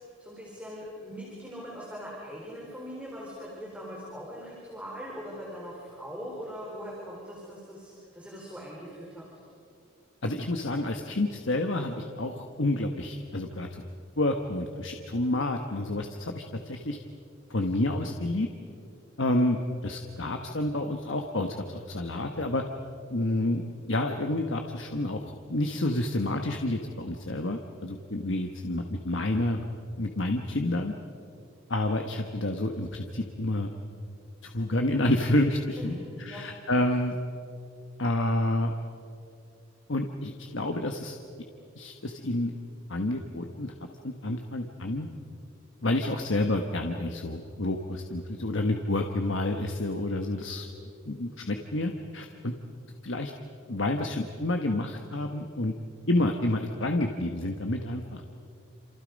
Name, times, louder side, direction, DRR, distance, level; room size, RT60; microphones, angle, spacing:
voice 1, 0.0-9.3 35.8-36.4, equal, 5° right, -5 dB, 4.5 m, -41 dB
voice 2, 10.2-13.8 14.2-17.0 17.5-18.5 19.2-22.6 23.1-23.6 23.9-29.6 30.0-30.9 31.7-33.7 34.4-37.2 38.0-38.7 39.9-41.2 41.8-42.5 42.9-43.7 44.0-45.1 45.8-50.7 51.0-52.5 53.0-53.3 53.7-55.7 56.1-58.2, left 1 dB, 65° left, 4 dB, 1.3 m, -29 dB
28.0 x 28.0 x 5.3 m, 2.5 s
head